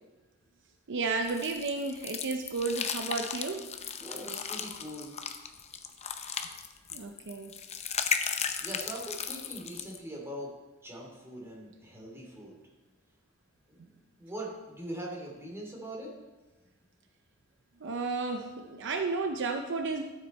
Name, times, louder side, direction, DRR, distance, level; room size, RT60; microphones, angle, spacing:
voice 1, 0.9-3.7 6.9-7.6 17.8-20.0, right 3 dB, 60° right, 5 dB, 0.7 m, -32 dB
sound 1, 1.3-10.0, left 6 dB, 30° left, 0.6 m, -36 dB
voice 2, 4.0-5.1 8.6-10.5 10.8-12.7 13.7-16.1, right 1 dB, 10° right, -3 dB, 2.7 m, -42 dB
13.0 x 7.4 x 4.2 m, 1.1 s
head